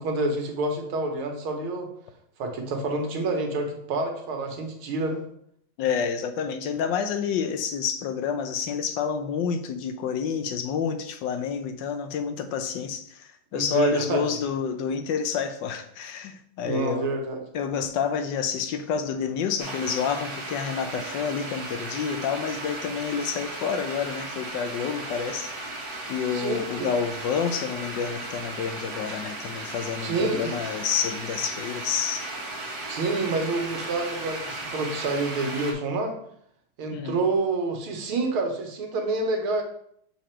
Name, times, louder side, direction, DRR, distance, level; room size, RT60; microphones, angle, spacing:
voice 1, 0.0-1.9 2.4-5.2 13.5-14.2 16.6-17.4 26.3-26.9 30.0-30.5 32.9-36.1 36.8-39.6, right 3 dB, 85° right, 3 dB, 1.9 m, -28 dB
voice 2, 5.8-17.1 17.5-25.7 26.1-32.2 36.9-37.2, left 7 dB, 70° left, 8 dB, 1.2 m, -29 dB
sound 1, 19.6-35.7, right 2 dB, 50° right, 1.6 m, -36 dB
5.8 x 4.2 x 4.3 m, 0.68 s
omnidirectional pair, 2.3 m